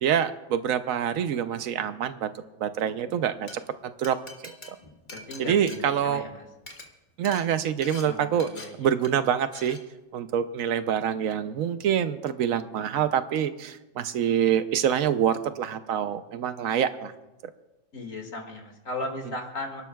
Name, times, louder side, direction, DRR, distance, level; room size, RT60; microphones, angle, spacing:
voice 1, 0.0-2.3 2.6-3.5 4.0-4.2 4.4-4.5 5.4-6.2 7.2-8.5 8.8-9.8 10.1-17.1, right 9 dB, 85° right, 11 dB, 1.1 m, -26 dB
Glass, 3.5-3.6 4.0-6.3 6.6-6.8 7.2-7.4 7.8-8.0 8.4-8.6 9.0-9.3 9.5-9.8, left 2 dB, 35° left, 1.6 m, -43 dB
voice 2, 5.1-6.4 8.0-8.9 17.9-19.8, left 2 dB, 75° left, 2 dB, 2.4 m, -36 dB
29.5 x 12.0 x 2.3 m, 1.0 s
omnidirectional pair, 1.4 m